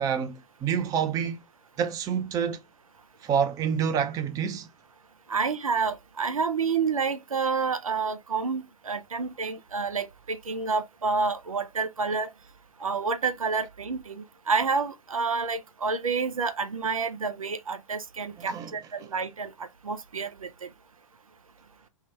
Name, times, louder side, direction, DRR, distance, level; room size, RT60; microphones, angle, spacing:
voice 1, 0.0-1.4 1.8-2.6 3.2-4.7 18.4-18.7, right 7 dB, 20° right, 0.6 m, -28 dB
voice 2, 5.3-12.3 12.8-20.7, right 5 dB, 85° right, 0.6 m, -29 dB
3.7 x 2.3 x 4.2 m
figure-of-eight pair, 115°, 17 cm